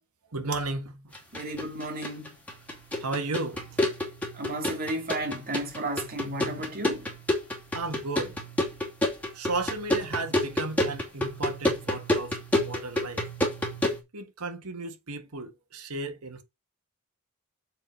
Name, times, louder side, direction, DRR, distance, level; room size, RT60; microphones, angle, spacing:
voice 1, 0.3-1.1 3.0-3.8 7.7-8.4 9.3-13.2 14.1-16.4, right 3 dB, 85° right, 1.6 m, -34 dB
sound 1, 1.1-14.0, left 1 dB, 5° left, 2.5 m, -30 dB
voice 2, 1.3-2.3 4.3-7.1, right 1 dB, 45° right, 2.6 m, -33 dB
7.7 x 4.9 x 5.0 m
head